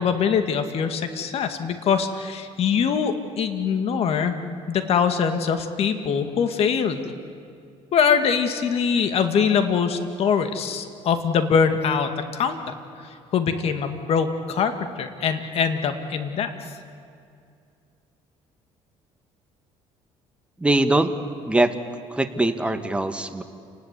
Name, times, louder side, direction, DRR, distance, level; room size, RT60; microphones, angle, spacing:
voice 1, 0.0-4.4 4.7-7.0 7.9-12.6 13.0-16.7, left 6 dB, 55° left, 8 dB, 2.1 m, -23 dB
voice 2, 20.6-21.2 21.5-21.7 22.1-23.4, right 2 dB, 10° right, 7 dB, 1.6 m, -22 dB
29.0 x 19.5 x 8.4 m, 2.4 s
cardioid pair, 110°, 12 cm